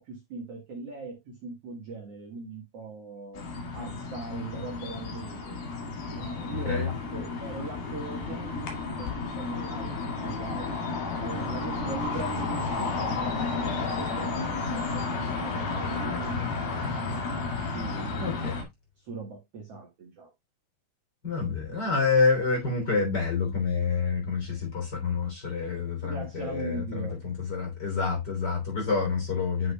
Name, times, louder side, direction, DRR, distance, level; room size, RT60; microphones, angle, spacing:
voice 1, 0.0-3.5 3.7-5.6 6.1-10.7 11.2-17.0 17.6-18.4 19.0-20.3 26.0-27.2, right 3 dB, 55° right, 2.1 m, -40 dB
sound 1, 3.4-18.6, left 4 dB, 85° left, 3.9 m, -32 dB
voice 2, 18.2-18.6 21.2-29.7, left 4 dB, 30° left, 3.5 m, -28 dB
9.9 x 6.1 x 2.2 m
omnidirectional pair, 4.1 m